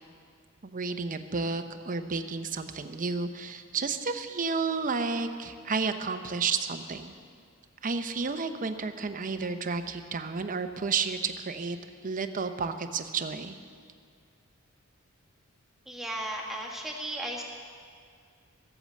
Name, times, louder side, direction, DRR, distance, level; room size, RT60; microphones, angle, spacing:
voice 1, 0.6-7.1 7.8-11.8 12.0-13.5, right 4 dB, 40° right, 8 dB, 0.7 m, -31 dB
voice 2, 15.9-17.4, right 1 dB, ahead, -3 dB, 1.7 m, -35 dB
14.5 x 8.5 x 7.5 m, 2.1 s
head